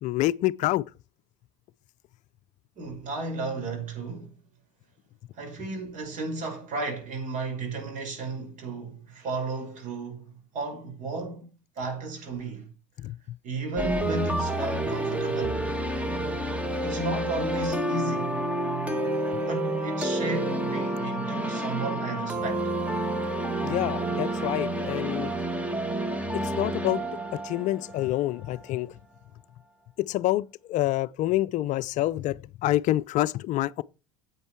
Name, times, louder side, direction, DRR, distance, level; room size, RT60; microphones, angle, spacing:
voice 1, 0.0-0.8 13.0-13.2 23.6-25.3 26.3-27.0 27.3-28.9 30.0-33.8, left 15 dB, 50° left, 0.5 m, -27 dB
voice 2, 2.8-4.3 5.4-11.5 11.8-12.7 13.4-15.8 16.8-18.4 19.4-22.7, right 3 dB, 50° right, 5.4 m, -34 dB
sound 1, 13.8-28.6, right 1 dB, 10° right, 1.7 m, -29 dB
9.8 x 8.2 x 4.6 m
hypercardioid pair, 85°, 16 cm